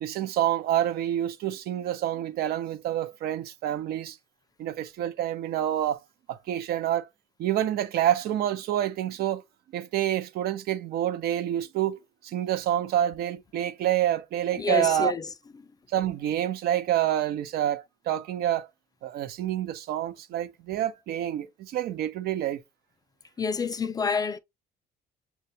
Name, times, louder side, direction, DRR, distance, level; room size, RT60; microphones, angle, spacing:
voice 1, 0.0-4.2 4.6-6.0 6.3-7.1 7.4-9.4 9.7-15.1 15.9-18.7 19.0-22.6, right 11 dB, 65° right, 0.5 m, -27 dB
voice 2, 14.6-15.3 23.4-24.4, left 5 dB, 25° left, 0.3 m, -28 dB
6.7 x 2.2 x 2.6 m
cardioid pair, 110°, 17 cm